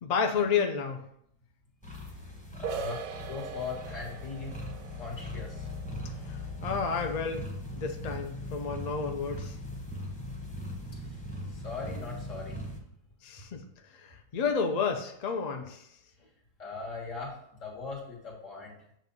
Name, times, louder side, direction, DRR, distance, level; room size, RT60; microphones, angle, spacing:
voice 1, 0.0-1.0 6.3-7.5 7.8-9.6 13.2-13.6 13.9-15.8, left 5 dB, 75° left, 4 dB, 0.3 m, -31 dB
sound 1, 1.8-12.8, left 1 dB, 5° left, 0.9 m, -40 dB
voice 2, 2.3-4.5 5.0-5.7 10.9-11.2 11.5-12.6 13.3-13.5 16.6-18.8, left 4 dB, 50° left, -2 dB, 1.8 m, -40 dB
sound 2, 2.6-8.1, right 8 dB, 70° right, 0.9 m, -43 dB
7.3 x 2.5 x 5.3 m, 0.70 s
omnidirectional pair, 1.7 m